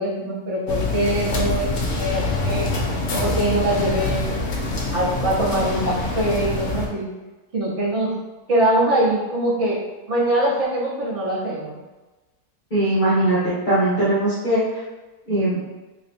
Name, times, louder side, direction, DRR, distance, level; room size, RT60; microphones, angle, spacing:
voice 1, 0.0-2.7 3.1-4.2 4.9-7.1 7.5-8.1 8.5-9.8 10.1-11.8, right 1 dB, 50° right, -5 dB, 1.4 m, -23 dB
sound 1, 0.7-6.9, left 2 dB, 60° left, 0.8 m, -25 dB
voice 2, 12.7-14.6 15.3-15.6, right 1 dB, 35° left, -11 dB, 1.1 m, -20 dB
4.0 x 3.2 x 2.8 m, 1.2 s
omnidirectional pair, 1.7 m